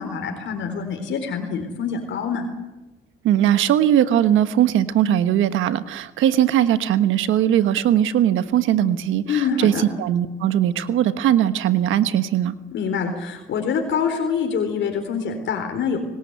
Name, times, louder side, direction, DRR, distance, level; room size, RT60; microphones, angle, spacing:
voice 1, 0.0-2.5 9.3-9.9 12.7-16.0, left 6 dB, 70° left, 4 dB, 4.1 m, -25 dB
voice 2, 3.2-12.5, right 11 dB, 85° right, 12 dB, 1.3 m, -19 dB
29.5 x 18.0 x 8.2 m, 1.0 s
cardioid pair, 90°, 20 cm